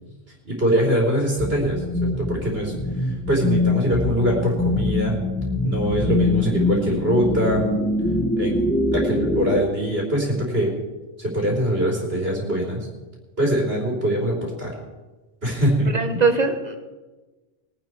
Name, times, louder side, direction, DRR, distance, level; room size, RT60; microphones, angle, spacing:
voice 1, 0.5-1.8 2.2-2.7 3.0-5.2 5.6-7.6 8.4-8.6 8.9-10.7 11.2-12.9 13.4-14.7 15.4-15.9, equal, 70° right, -3 dB, 3.8 m, -23 dB
sound 1, 1.4-9.6, left 2 dB, 10° left, 1.4 m, -24 dB
voice 2, 15.9-16.8, right 4 dB, 40° right, 5 dB, 1.6 m, -21 dB
21.5 x 10.0 x 4.6 m, 1.2 s
omnidirectional pair, 1.0 m